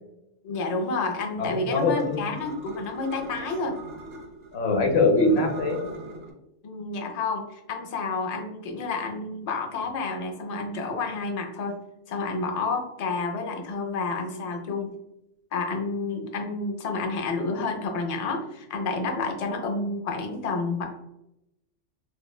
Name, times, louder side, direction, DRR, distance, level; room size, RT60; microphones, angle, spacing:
voice 1, 0.4-3.8 6.6-11.8 12.1-14.9 15.5-20.8, left 3 dB, 75° left, 3 dB, 0.3 m, -30 dB
voice 2, 1.4-2.2 4.5-5.8, left 2 dB, 60° left, 2 dB, 1.0 m, -22 dB
sound 1, 1.7-4.5 5.1-6.3, right 1 dB, 60° right, 1.0 m, -41 dB
4.6 x 2.1 x 2.2 m, 0.86 s
omnidirectional pair, 1.3 m